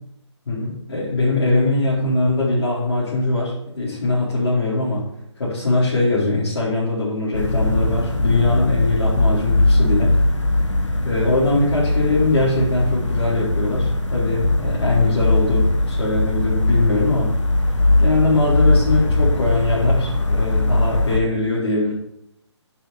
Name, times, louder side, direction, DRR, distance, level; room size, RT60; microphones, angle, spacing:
voice 1, 0.5-5.1 5.4-10.2 11.0-17.3 18.0-21.9, left 2 dB, 65° left, -9 dB, 4.6 m, -21 dB
sound 1, 7.3-21.2, left 2 dB, 80° left, 1.6 m, -19 dB
10.0 x 6.9 x 5.2 m, 0.79 s
figure-of-eight pair, 145°, 15 cm